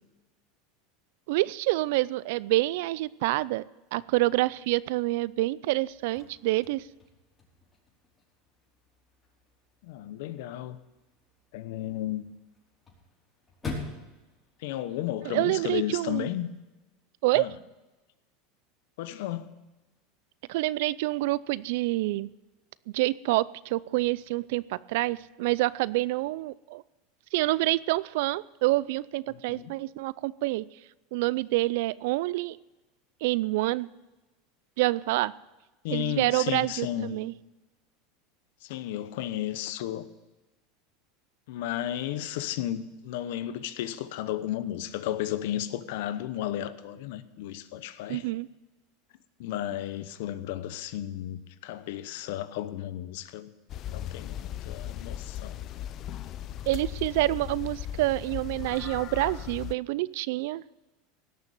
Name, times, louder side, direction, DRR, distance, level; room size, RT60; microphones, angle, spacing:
voice 1, 1.3-3.6 3.9-6.8 15.3-16.3 17.2-17.5 20.5-22.3 22.9-26.8 27.3-30.6 31.1-32.6 33.2-33.9 34.8-35.3 35.9-37.3 48.1-48.5 56.7-60.6, right 19 dB, 70° right, 0.4 m, -27 dB
Chirp tweet / Car / Slam, 5.8-15.8, left 3 dB, 20° left, 4.9 m, -46 dB
voice 2, 9.8-10.8 11.5-12.3 14.6-16.5 17.3-17.5 19.0-19.5 29.3-29.7 35.8-37.2 38.6-40.1 41.5-48.2 49.4-53.5 53.9-55.6, left 12 dB, 75° left, 0.9 m, -33 dB
sound 1, 53.7-59.7, left 11 dB, 45° left, 0.6 m, -37 dB
17.5 x 6.6 x 9.2 m
supercardioid pair, 120°, 0 cm